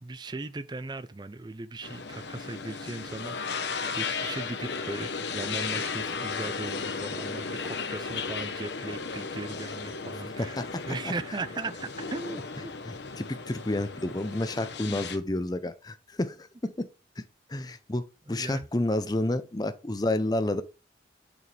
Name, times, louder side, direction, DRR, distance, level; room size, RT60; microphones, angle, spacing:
voice 1, 0.0-3.6 3.9-10.6 10.9-12.7 14.9-15.0 18.3-18.7, right 3 dB, 25° right, 0.4 m, -38 dB
sound 1, 1.8-15.2, left 5 dB, 75° left, 0.9 m, -35 dB
voice 2, 10.4-10.8 12.9-16.9 17.2-17.3 17.5-20.6, left 1 dB, 20° left, 0.6 m, -30 dB
6.9 x 6.4 x 3.3 m
head